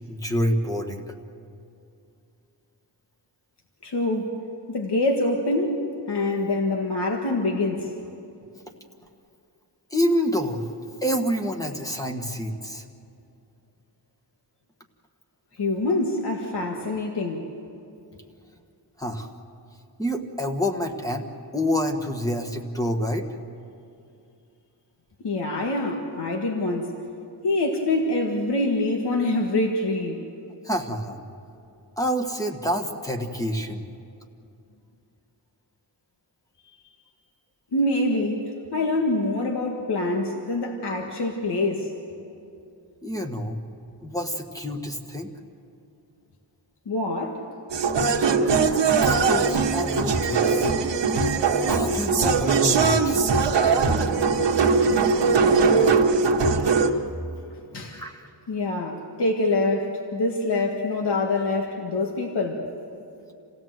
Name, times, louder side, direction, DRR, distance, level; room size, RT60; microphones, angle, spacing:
voice 1, 0.1-1.1 9.9-10.7 11.0-12.8 19.0-19.3 20.0-21.3 21.5-23.3 30.6-31.2 32.0-33.8 43.0-43.6 44.0-45.3 49.0-50.7 51.7-53.3 55.9-56.2 57.9-58.3, equal, 10° left, 4 dB, 1.5 m, -27 dB
voice 2, 3.8-4.4 4.7-7.9 15.6-17.4 25.2-27.0 27.4-30.2 37.7-41.9 46.9-47.4 57.7-58.0 58.5-62.7, left 2 dB, 70° left, 1 dB, 1.8 m, -25 dB
sound 1, 47.7-56.9, right 4 dB, 85° right, 1.4 m, -21 dB
28.0 x 16.5 x 7.7 m, 2.6 s
wide cardioid pair, 135°, 42 cm